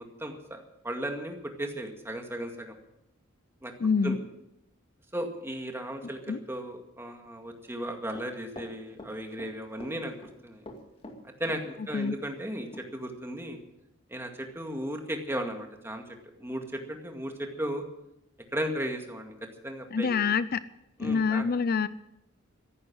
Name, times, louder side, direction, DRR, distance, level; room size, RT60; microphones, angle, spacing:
voice 1, 0.0-2.8 3.6-3.7 4.0-4.2 5.1-10.2 10.4-10.6 11.4-13.6 14.1-16.0 16.4-17.8 18.5-19.3 19.6-20.1 21.0-21.4, right 1 dB, 10° right, 3 dB, 2.0 m, -35 dB
voice 2, 3.8-4.2 6.3-6.4 11.9-12.1 19.9-20.6 21.0-21.9, left 5 dB, 50° left, 15 dB, 0.5 m, -26 dB
Run, 8.1-9.5 9.8-10.3 10.7-12.0 12.3-12.4 12.7-12.9, left 1 dB, 30° left, 2.2 m, -45 dB
14.5 x 11.0 x 7.6 m, 0.83 s
head